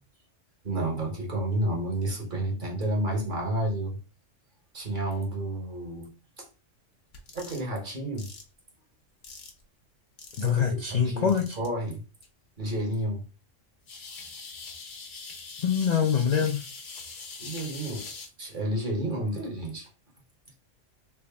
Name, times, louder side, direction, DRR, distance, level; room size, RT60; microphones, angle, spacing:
voice 1, 0.6-4.0 4.7-6.4 7.3-8.3 10.4-12.0 12.6-13.2 17.4-18.1 18.4-19.9, right 1 dB, 45° right, 1.1 m, -31 dB
sound 1, 7.1-7.6 8.2-8.4 9.2-9.6 10.2-10.6 11.3-11.7 12.2-12.3 13.9-18.3, left 4 dB, 75° left, 1.2 m, -42 dB
voice 2, 10.4-11.6 15.6-16.6, left 7 dB, 55° left, 0.5 m, -24 dB
3.5 x 2.5 x 3.4 m
omnidirectional pair, 1.3 m